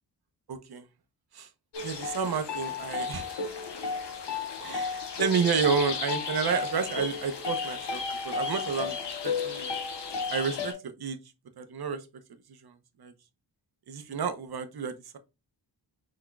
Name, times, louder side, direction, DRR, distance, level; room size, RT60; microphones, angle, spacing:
voice 1, 0.5-0.8 1.3-1.5 1.8-3.2 4.6-9.7 10.3-11.2 11.6-12.0 12.6-12.7 13.0-13.1 13.9-15.2, right 6 dB, 60° right, 0.9 m, -30 dB
sound 1, 1.7-10.7, left 5 dB, 75° left, 1.2 m, -33 dB
5.8 x 3.7 x 2.3 m
wide cardioid pair, 95°, 43 cm